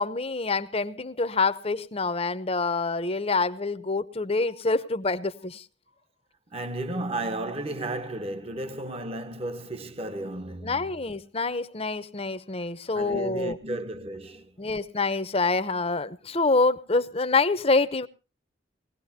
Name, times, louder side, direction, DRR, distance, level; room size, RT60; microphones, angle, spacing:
voice 1, 0.0-5.6 10.6-13.6 14.6-18.1, left 3 dB, 30° left, 0.9 m, -26 dB
voice 2, 6.5-10.9 12.9-14.5, right 2 dB, 30° right, 1.2 m, -33 dB
20.5 x 17.0 x 2.8 m
head